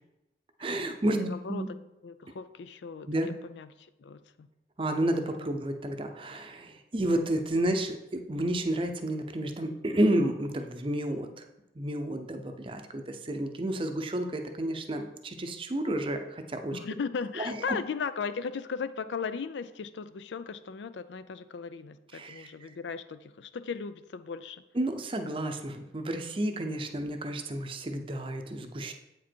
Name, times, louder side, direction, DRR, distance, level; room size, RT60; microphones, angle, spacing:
voice 1, 0.6-1.7 3.1-3.4 4.8-11.3 11.8-16.8 17.4-17.6 22.1-22.7 24.7-28.9, right 1 dB, 30° right, 6 dB, 0.6 m, -31 dB
voice 2, 1.2-3.1 3.5-4.5 5.4-5.5 16.7-24.6, left 5 dB, 90° left, 13 dB, 0.4 m, -37 dB
8.1 x 5.0 x 4.5 m, 0.95 s
head